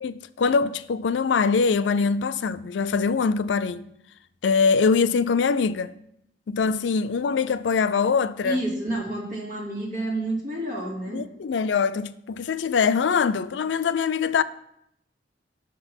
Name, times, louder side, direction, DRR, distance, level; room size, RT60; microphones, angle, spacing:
voice 1, 0.0-3.9 4.4-5.9 6.5-8.6 11.1-14.4, left 5 dB, 85° left, 0.4 m, -23 dB
voice 2, 8.4-11.2, right 1 dB, 50° right, 3.0 m, -29 dB
6.4 x 5.9 x 7.1 m
head